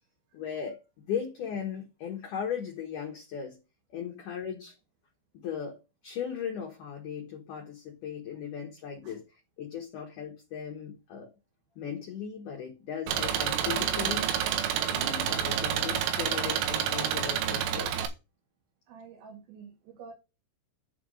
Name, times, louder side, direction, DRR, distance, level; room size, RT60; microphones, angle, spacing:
voice 1, 0.3-3.6 3.9-4.8 5.3-9.2 9.6-11.3 11.8-14.3 14.9-18.1, left 8 dB, 65° left, 2.2 m, -37 dB
Engine, 13.1-18.1, right 9 dB, 90° right, 3.5 m, -29 dB
voice 2, 18.9-20.1, right 5 dB, 75° right, 4.3 m, -48 dB
10.5 x 3.6 x 6.3 m
omnidirectional pair, 5.4 m